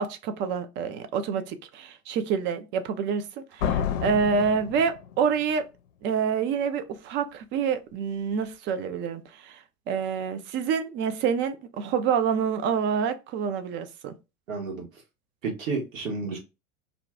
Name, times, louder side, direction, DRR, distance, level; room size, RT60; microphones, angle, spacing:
voice 1, 0.0-5.7 6.0-14.1, right 6 dB, 30° right, 0.4 m, -27 dB
Slam, 3.6-5.5, left 8 dB, 65° left, 0.6 m, -30 dB
voice 2, 14.5-14.8 15.4-16.4, right 4 dB, 70° right, 1.2 m, -31 dB
2.5 x 2.3 x 3.3 m
figure-of-eight pair, 85°, 42 cm